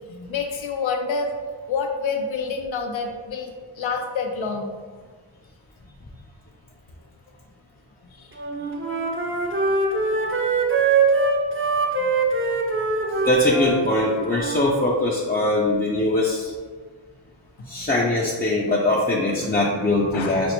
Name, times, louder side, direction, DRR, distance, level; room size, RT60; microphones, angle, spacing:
voice 1, 0.1-1.3 1.7-3.5 3.8-4.7 8.2-8.3 12.0-12.1 20.1-20.5, left 5 dB, 75° left, 3 dB, 0.6 m, -27 dB
Wind instrument woodwind instrument, 8.4-14.7, right 4 dB, 30° right, 0.5 m, -23 dB
voice 2, 13.2-16.5 17.7-20.5, left 2 dB, 20° left, -4 dB, 0.4 m, -21 dB
5.2 x 2.0 x 2.9 m, 1.5 s
wide cardioid pair, 45°, 47 cm